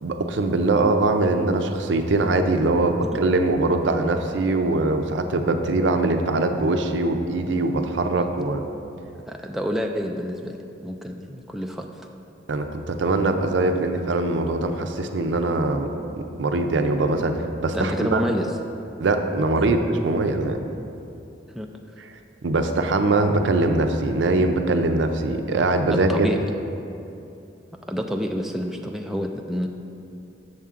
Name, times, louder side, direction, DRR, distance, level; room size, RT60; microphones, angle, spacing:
voice 1, 0.0-8.6 12.5-15.9 16.2-18.2 19.0-20.6 22.4-26.3, right 2 dB, 70° right, 6 dB, 0.5 m, -22 dB
voice 2, 9.3-12.0 17.7-18.5 19.6-19.7 21.5-21.7 25.9-26.5 27.9-29.7, equal, ahead, 2 dB, 0.3 m, -28 dB
7.2 x 6.5 x 3.6 m, 2.7 s
head